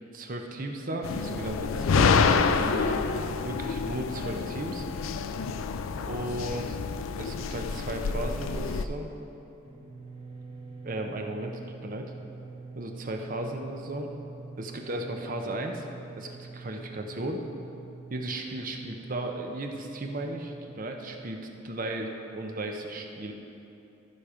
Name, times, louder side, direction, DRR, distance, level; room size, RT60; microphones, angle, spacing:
voice 1, 0.1-3.0 3.4-4.9 6.0-6.8 7.2-9.1 10.8-11.5 11.8-12.1 12.7-14.1 14.6-15.9 16.2-17.4 18.1-21.4 21.6-23.3, right 1 dB, 40° right, 3 dB, 0.7 m, -35 dB
sound 1, 1.0-8.8, left 5 dB, 75° left, 0.4 m, -27 dB
sound 2, 9.6-21.1, right 3 dB, 25° right, 1.3 m, -45 dB
14.0 x 5.1 x 4.9 m, 2.9 s
head